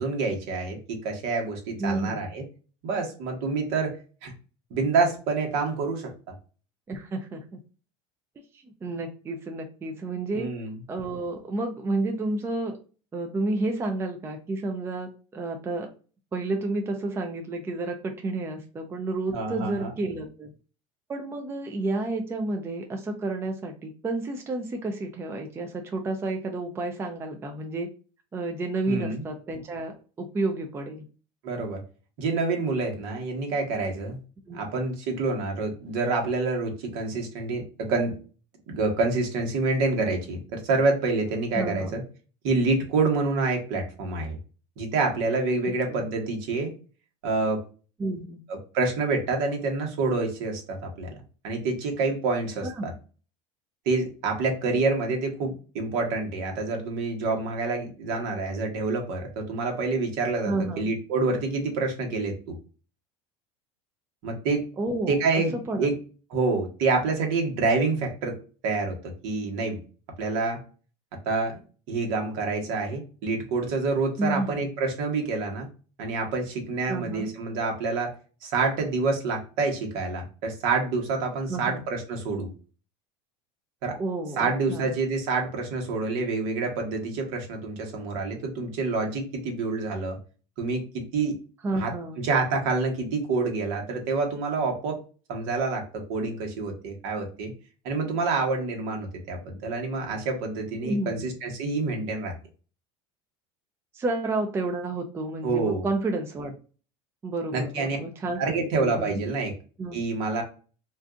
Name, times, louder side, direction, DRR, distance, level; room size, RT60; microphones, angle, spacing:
voice 1, 0.0-2.4 2.8-4.0 4.2-4.3 4.7-6.1 10.3-10.7 19.3-19.9 28.9-29.2 31.4-31.8 32.2-34.2 34.5-38.1 38.7-42.0 42.4-44.4 44.8-46.7 47.2-47.6 48.5-51.1 51.4-52.9 53.9-62.6 64.2-64.6 65.1-65.9 66.3-68.4 68.6-69.8 70.2-70.6 71.2-71.6 71.9-75.7 76.0-78.1 78.4-82.5 83.8-84.0 84.4-90.2 90.6-91.3 91.7-95.0 95.3-97.5 97.8-102.3 105.4-105.9 107.5-108.0 108.4-109.5 109.9-110.4, right 3 dB, 65° right, 2 dB, 1.1 m, -27 dB
voice 2, 1.8-2.2 6.9-7.6 8.5-10.5 10.9-12.8 13.1-15.9 16.3-20.5 21.1-27.9 28.3-31.0 34.5-34.7 41.5-41.9 45.9-46.0 48.0-48.4 52.6-52.9 60.5-60.9 64.8-65.9 74.2-74.7 76.9-77.3 81.5-81.8 84.0-84.9 91.6-92.2 100.8-101.3 103.9-106.6 107.2-109.2 109.8-110.0, right 2 dB, 15° right, 4 dB, 0.4 m, -31 dB
2.5 x 2.3 x 3.7 m, 0.37 s
supercardioid pair, 135°, 15 cm